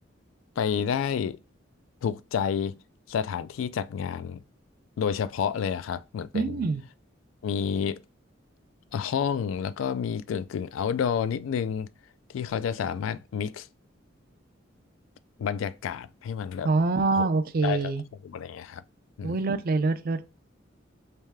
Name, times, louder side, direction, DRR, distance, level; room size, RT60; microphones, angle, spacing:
voice 1, 0.6-1.4 2.0-2.8 3.1-4.4 5.0-6.7 7.4-8.0 8.9-11.9 12.3-13.7 15.4-16.7 17.1-17.3 17.6-17.9 18.2-18.8 19.2-19.4, left 7 dB, 90° left, 0.3 m, -29 dB
voice 2, 6.3-6.8 16.6-18.0 19.2-20.2, right 3 dB, 50° right, 0.4 m, -25 dB
3.3 x 3.2 x 3.4 m
head